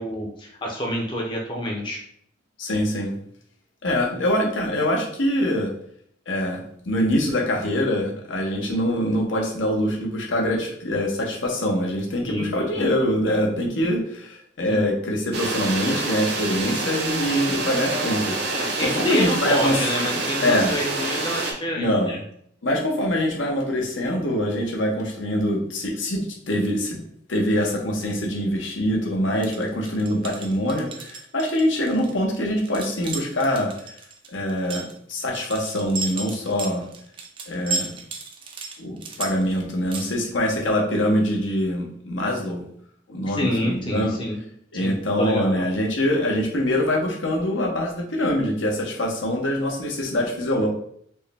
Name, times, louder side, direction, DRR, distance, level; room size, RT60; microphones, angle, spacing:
voice 1, 0.0-2.0 12.2-12.8 14.7-14.9 18.5-22.2 43.3-44.4 44.8-45.6, left 1 dB, 25° left, -1 dB, 0.6 m, -28 dB
voice 2, 2.6-3.1 3.8-5.7 6.3-6.6 6.9-20.7 21.8-22.2 22.6-27.0 27.3-34.0 34.3-36.9 37.5-38.0 38.8-42.7 43.1-44.2 44.7-50.7, equal, 80° left, 0 dB, 0.8 m, -24 dB
sound 1, 15.3-21.5, right 3 dB, 60° right, 0.6 m, -27 dB
sound 2, 29.4-40.1, right 3 dB, 25° right, 0.3 m, -34 dB
4.4 x 2.1 x 3.4 m, 0.66 s
head